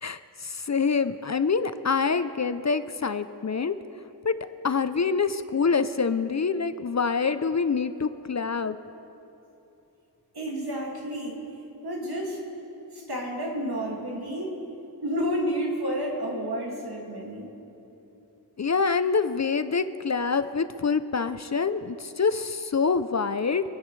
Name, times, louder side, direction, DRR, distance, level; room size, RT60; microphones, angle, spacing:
voice 1, 0.0-3.8 4.2-4.3 4.6-8.8 18.6-23.6, left 5 dB, 45° left, 12 dB, 0.5 m, -26 dB
voice 2, 10.3-11.4 11.8-12.4 12.9-14.6 15.0-17.5, equal, 65° right, -1 dB, 2.2 m, -30 dB
25.5 x 10.0 x 3.2 m, 3.0 s
wide cardioid pair, 45°, 41 cm